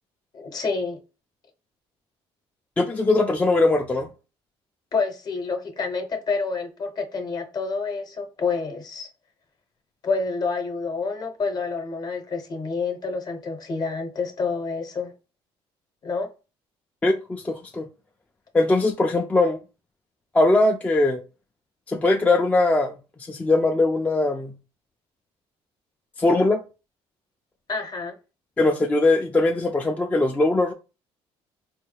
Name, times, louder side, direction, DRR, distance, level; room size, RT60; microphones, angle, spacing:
voice 1, 0.3-1.0 4.9-9.1 10.0-15.1 16.0-16.3 27.7-28.2, left 4 dB, 40° left, 0.8 m, -28 dB
voice 2, 2.8-4.1 17.0-17.8 18.5-19.6 20.3-21.2 21.9-22.9 23.2-24.5 26.2-26.6 28.6-30.7, left 2 dB, 15° left, 0.3 m, -20 dB
4.2 x 2.2 x 3.3 m
cardioid pair, 120°, 11 cm